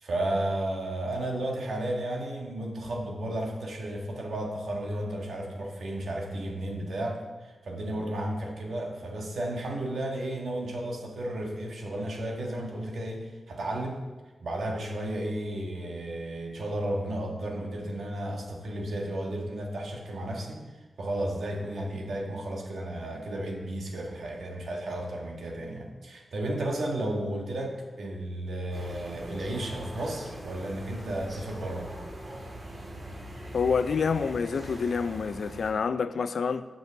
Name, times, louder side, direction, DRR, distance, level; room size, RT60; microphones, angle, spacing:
voice 1, 0.0-14.0 14.4-20.6 21.0-31.9, right 1 dB, 85° right, 1.7 m, -33 dB
sound 1, 28.7-35.7, right 1 dB, 45° right, 2.3 m, -42 dB
voice 2, 33.5-36.7, left 5 dB, 75° left, 0.5 m, -27 dB
8.2 x 6.2 x 6.9 m
wide cardioid pair, 140°, 0 cm